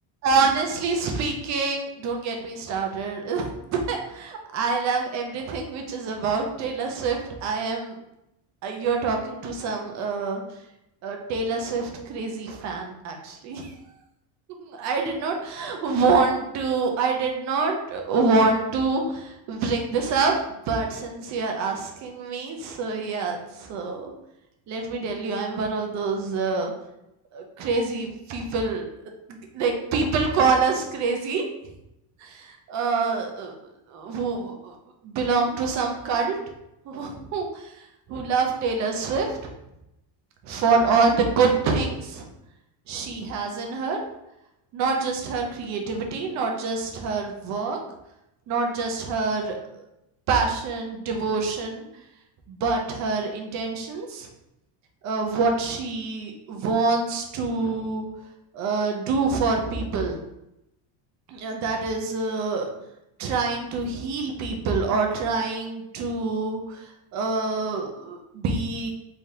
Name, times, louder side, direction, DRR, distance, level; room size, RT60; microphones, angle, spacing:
voice 1, 0.2-7.9 8.6-10.4 11.0-13.7 14.6-24.1 24.7-26.7 27.3-28.9 29.3-31.5 32.2-33.5 33.9-34.7 35.0-36.4 36.9-37.5 38.1-39.4 40.4-42.3 42.9-44.0 44.7-47.8 48.5-49.8 50.3-51.8 52.5-54.3 55.0-58.1 58.5-60.2 61.3-62.7 63.2-66.8 67.1-68.9, right 4 dB, 35° right, 2 dB, 0.5 m, -26 dB
3.8 x 3.4 x 2.7 m, 0.86 s
cardioid pair, 175°, 48 cm